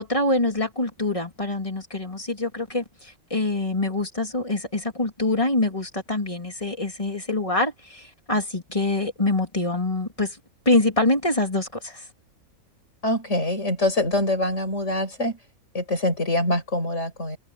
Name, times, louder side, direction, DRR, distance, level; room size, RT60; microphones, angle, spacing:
voice 1, 0.0-10.4 10.7-12.0, left 2 dB, 25° left, 3.7 m, -25 dB
voice 2, 13.0-15.4 15.7-17.4, left 1 dB, 55° left, 6.7 m, -24 dB
omnidirectional pair, 1.4 m